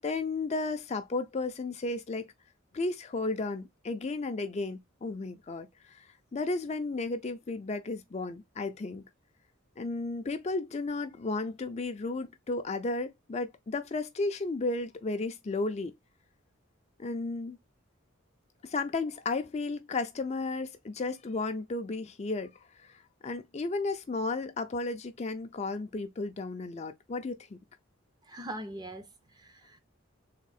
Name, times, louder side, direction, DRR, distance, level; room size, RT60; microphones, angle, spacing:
voice 1, 0.0-2.3 2.7-9.0 9.8-15.9 17.0-17.6 18.6-22.5 22.8-27.6, left 3 dB, 30° left, 0.4 m, -34 dB
voice 2, 28.2-29.8, right 1 dB, 20° right, 0.5 m, -42 dB
3.6 x 2.9 x 4.0 m
head